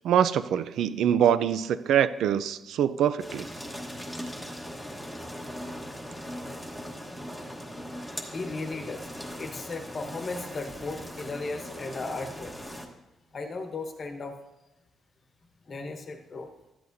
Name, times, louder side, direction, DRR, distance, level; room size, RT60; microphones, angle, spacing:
voice 1, 0.0-3.5, right 9 dB, 80° right, 14 dB, 0.4 m, -24 dB
sound 1, 3.2-12.9, equal, ahead, 1.1 m, -39 dB
voice 2, 7.8-12.7 13.3-14.4 15.7-16.5, left 3 dB, 35° left, 5 dB, 1.1 m, -36 dB
14.0 x 11.0 x 2.6 m, 0.98 s
cardioid pair, 165°, 0 cm